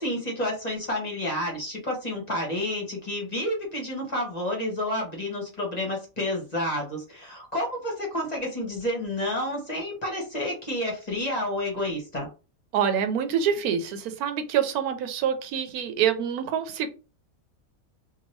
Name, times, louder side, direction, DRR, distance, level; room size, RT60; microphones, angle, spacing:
voice 1, 0.0-12.3, left 1 dB, 35° left, -1 dB, 0.9 m, -30 dB
voice 2, 12.7-16.9, right 8 dB, 85° right, 8 dB, 1.1 m, -26 dB
2.8 x 2.5 x 3.1 m, 0.33 s
omnidirectional pair, 1.5 m